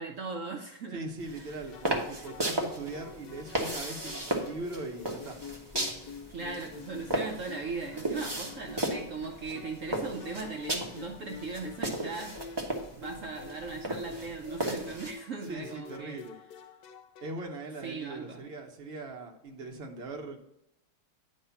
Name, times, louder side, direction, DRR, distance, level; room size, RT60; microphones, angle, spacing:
voice 1, 0.0-1.1 1.4-1.6 6.3-12.4 12.9-16.2 17.8-18.4, right 4 dB, 85° right, 2 dB, 0.7 m, -39 dB
voice 2, 0.9-5.4 15.5-16.4 17.2-20.4, right 2 dB, 40° right, 2 dB, 1.0 m, -40 dB
sound 1, 1.2-15.1, right 1 dB, 25° right, 0.5 m, -36 dB
sound 2, 1.7-17.7, left 6 dB, 75° left, 0.9 m, -47 dB
9.7 x 3.3 x 5.7 m, 0.83 s
omnidirectional pair, 2.2 m